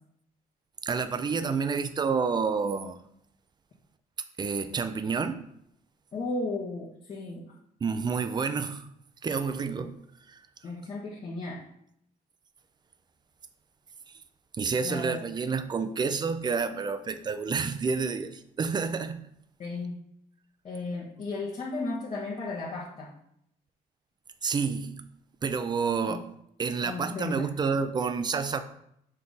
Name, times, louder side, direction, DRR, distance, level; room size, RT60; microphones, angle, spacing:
voice 1, 0.8-3.0 4.4-5.4 7.8-8.8 9.2-10.0 10.3-10.4 14.6-19.2 24.4-25.1 25.4-26.3 26.6-28.6, right 5 dB, 25° right, 0.5 m, -29 dB
voice 2, 6.1-7.5 10.6-11.6 14.8-15.2 19.6-20.0 20.6-23.1 26.1-26.2 26.8-27.5, left 2 dB, 40° left, 1.2 m, -34 dB
6.7 x 3.6 x 4.1 m
cardioid pair, 110°, 17 cm